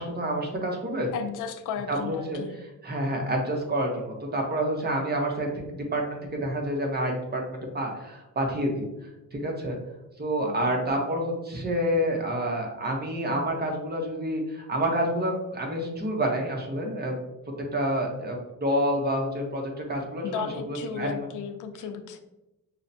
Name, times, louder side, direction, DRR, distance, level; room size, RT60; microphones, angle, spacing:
voice 1, 0.0-1.1 1.9-2.4 2.8-8.9 9.3-9.8 10.2-17.1 17.6-21.3, right 1 dB, 30° right, 1 dB, 0.9 m, -28 dB
voice 2, 1.1-2.5 10.4-10.9 20.2-22.2, left 7 dB, 80° left, 7 dB, 0.5 m, -35 dB
5.5 x 2.1 x 2.7 m, 0.95 s
cardioid pair, 105°, 31 cm